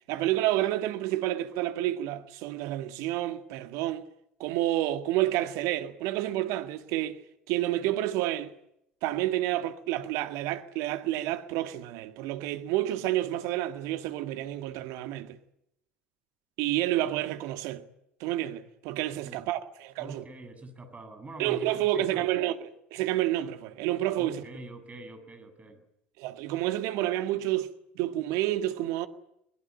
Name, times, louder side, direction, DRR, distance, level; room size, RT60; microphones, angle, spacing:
voice 1, 0.1-4.0 4.4-7.2 7.5-8.5 9.0-15.4 16.6-17.8 18.2-20.2 21.4-24.4 26.2-27.7 28.0-29.1, right 14 dB, 55° right, 1.9 m, -29 dB
voice 2, 20.0-21.7 21.9-22.3 24.2-25.8, right 2 dB, 20° right, 7.8 m, -44 dB
23.0 x 21.5 x 8.8 m
figure-of-eight pair, 65°, 6 cm